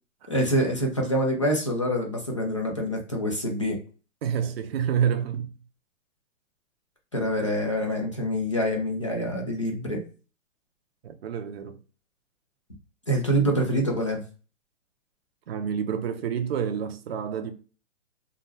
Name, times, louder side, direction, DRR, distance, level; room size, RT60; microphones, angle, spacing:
voice 1, 0.3-3.8 7.1-10.0 13.1-14.2, equal, 25° left, 0.3 m, -26 dB
voice 2, 4.2-5.5 11.0-11.8 15.5-17.5, right 8 dB, 50° right, 0.5 m, -28 dB
2.3 x 2.2 x 3.1 m
hypercardioid pair, 145°, 41 cm